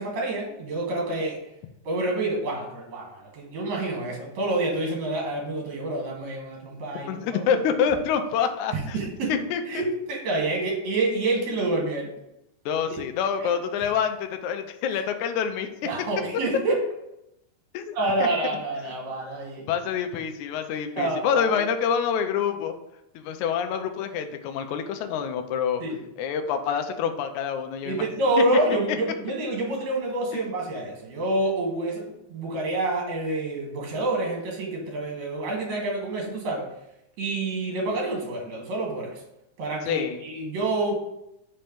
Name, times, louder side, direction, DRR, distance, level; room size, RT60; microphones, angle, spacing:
voice 1, 0.0-1.4 1.9-7.4 8.7-9.4 9.7-12.1 12.9-13.0 13.4-13.5 15.8-16.8 17.9-19.7 21.0-21.6 25.8-26.0 27.8-36.7 37.2-39.2 39.6-40.9, right 2 dB, 65° right, -1 dB, 2.7 m, -28 dB
voice 2, 7.1-9.0 9.3-9.8 12.7-15.7 17.7-18.3 19.7-22.8 23.2-25.8 26.2-28.1 30.3-30.4 39.9-40.2, left 7 dB, 80° left, 7 dB, 2.0 m, -27 dB
5.3 x 4.4 x 5.1 m, 0.86 s
omnidirectional pair, 3.5 m